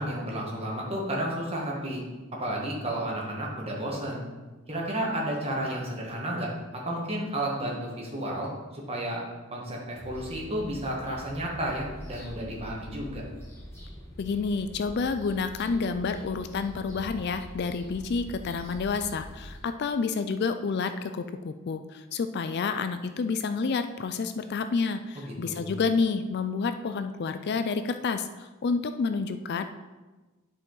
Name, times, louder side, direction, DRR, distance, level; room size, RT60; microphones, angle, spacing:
voice 1, 0.0-2.0 2.4-4.2 4.7-9.2 9.5-13.2 25.1-25.7, right 1 dB, 25° right, -2 dB, 1.5 m, -32 dB
sound 1, 10.0-19.6, equal, 10° left, 1.7 m, -44 dB
voice 2, 14.2-29.6, left 4 dB, 50° left, 10 dB, 0.3 m, -29 dB
10.0 x 5.0 x 3.9 m, 1.2 s
head